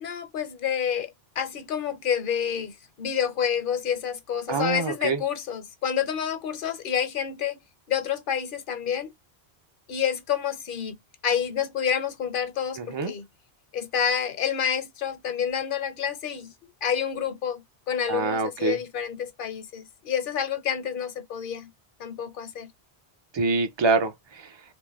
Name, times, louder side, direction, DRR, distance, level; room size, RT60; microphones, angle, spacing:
voice 1, 0.0-7.6 7.9-9.1 9.9-11.0 11.2-13.2 13.7-16.5 16.8-21.7 22.0-22.7, left 8 dB, 60° left, 0.8 m, -28 dB
voice 2, 4.5-5.2 12.8-13.1 18.1-18.8 23.3-24.5, right 4 dB, 50° right, 0.3 m, -25 dB
3.8 x 2.5 x 2.3 m
omnidirectional pair, 1.1 m